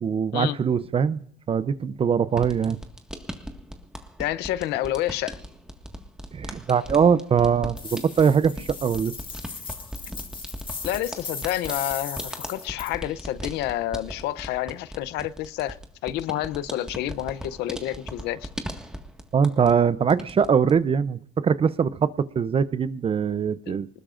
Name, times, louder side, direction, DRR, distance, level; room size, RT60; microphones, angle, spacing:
voice 1, 0.0-1.2 1.5-2.8 6.3-9.1 19.3-22.1 22.4-23.9, right 7 dB, 35° right, 15 dB, 0.6 m, -22 dB
sound 1, 2.3-19.8 20.1-20.8, equal, 5° right, 1.7 m, -39 dB
voice 2, 4.2-5.4 10.8-15.8 16.0-18.5 23.7-23.8, left 13 dB, 90° left, 16 dB, 0.7 m, -29 dB
sound 2, 7.8-12.9, left 4 dB, 30° left, 1.9 m, -37 dB
24.5 x 20.0 x 2.5 m, 0.65 s
cardioid pair, 110°, 17 cm